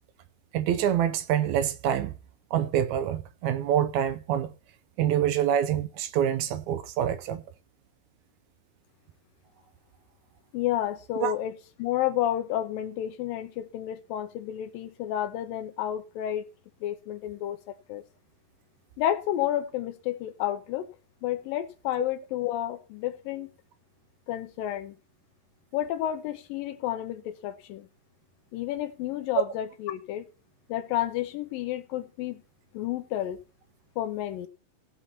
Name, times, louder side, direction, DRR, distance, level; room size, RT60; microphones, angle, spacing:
voice 1, 0.5-2.1 2.5-4.5 5.0-7.4 11.2-11.3, right 10 dB, 75° right, 1.8 m, -26 dB
voice 2, 10.5-11.5 11.8-16.4 16.8-18.0 19.0-20.9 21.2-23.5 24.3-24.9 25.7-27.9 28.5-30.3 30.7-32.4 32.7-33.4 34.0-34.5, left 12 dB, 85° left, 2.5 m, -31 dB
16.5 x 6.0 x 4.2 m
omnidirectional pair, 4.0 m